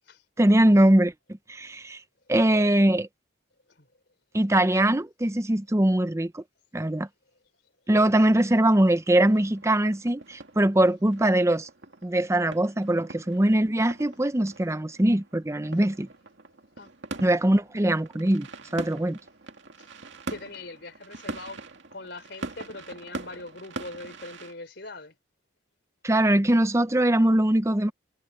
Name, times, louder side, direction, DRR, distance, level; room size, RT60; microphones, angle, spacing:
voice 1, 0.4-1.1 1.5-2.0 2.3-3.1 4.3-6.4 6.7-7.1 7.9-11.7 12.0-16.1 17.2-18.5 18.7-19.2 26.0-27.9, right 1 dB, 15° right, 0.6 m, -22 dB
sound 1, 8.3-24.5, right 3 dB, 75° right, 2.3 m, -43 dB
voice 2, 20.3-21.6 21.9-25.1, left 2 dB, 60° left, 4.4 m, -41 dB
head